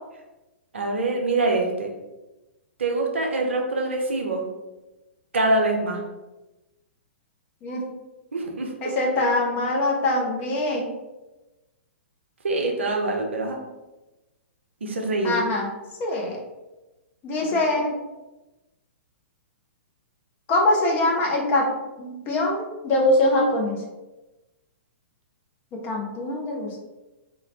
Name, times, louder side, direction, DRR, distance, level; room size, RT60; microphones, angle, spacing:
voice 1, 0.7-1.9 2.8-4.4 5.3-6.0 8.3-8.9 12.4-13.6 14.8-15.4 17.4-17.9, right 2 dB, 65° right, 2 dB, 0.5 m, -25 dB
voice 2, 8.8-10.9 15.2-15.7 16.0-16.4 17.2-17.9 20.5-21.7 22.0-23.8 25.8-26.8, left 1 dB, 25° left, -1 dB, 0.5 m, -23 dB
2.3 x 2.1 x 3.2 m, 1.1 s
figure-of-eight pair, 115°, 7 cm